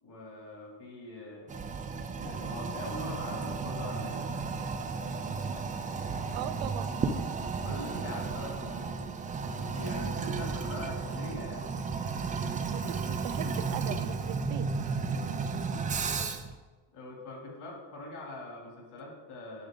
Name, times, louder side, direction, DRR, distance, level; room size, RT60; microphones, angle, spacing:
voice 1, 0.0-1.5 2.1-4.2 6.5-6.6 7.4-9.1 9.5-11.7 15.7-16.0 16.9-19.7, left 2 dB, 55° left, -1 dB, 3.0 m, -43 dB
Toilet flush, 1.5-16.6, right 4 dB, 20° right, 0.3 m, -33 dB
voice 2, 6.3-6.9 12.6-14.8 15.1-15.2, right 11 dB, 70° right, 10 dB, 0.7 m, -40 dB
10.0 x 6.2 x 3.8 m, 1.3 s
cardioid pair, 145°, 48 cm